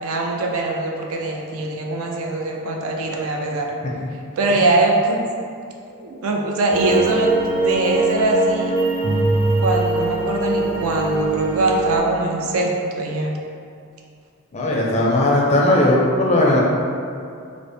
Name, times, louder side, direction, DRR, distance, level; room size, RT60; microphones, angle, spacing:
voice 1, 0.0-3.7 4.4-5.3 6.0-7.3 7.6-8.7 9.6-12.7 12.9-13.3, right 2 dB, 70° right, 0 dB, 0.5 m, -22 dB
sound 1, 6.7-12.0, right 2 dB, 25° right, 0.6 m, -22 dB
voice 2, 14.5-16.6, left 1 dB, 30° left, -4 dB, 0.4 m, -17 dB
3.9 x 2.0 x 3.3 m, 2.4 s
head